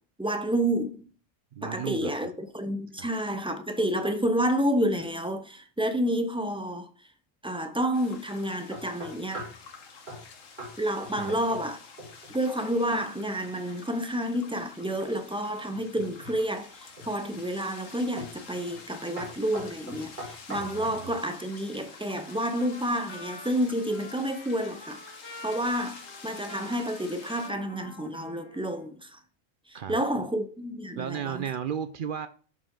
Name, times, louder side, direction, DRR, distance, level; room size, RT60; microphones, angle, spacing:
voice 1, 0.2-1.1 1.6-6.9 7.4-9.5 10.8-11.8 12.3-29.2 29.7-31.5, equal, 10° right, 0.3 m, -29 dB
voice 2, 1.5-2.3 3.0-3.1 11.2-11.3 20.6-21.2 29.7-30.2 31.0-32.3, right 8 dB, 65° right, 0.5 m, -35 dB
sound 1, 7.9-27.5, left 5 dB, 75° left, 1.5 m, -49 dB
sound 2, 8.7-9.6 10.1-10.3 10.6-10.8 11.0-11.7 12.0-12.4 15.7-16.4 17.0-17.4 18.2-18.4 18.7-18.9 19.2-21.0, right 1 dB, 35° right, 3.1 m, -41 dB
Trumpet, 22.3-28.9, left 2 dB, 20° left, 1.4 m, -47 dB
11.0 x 5.3 x 3.8 m
omnidirectional pair, 1.4 m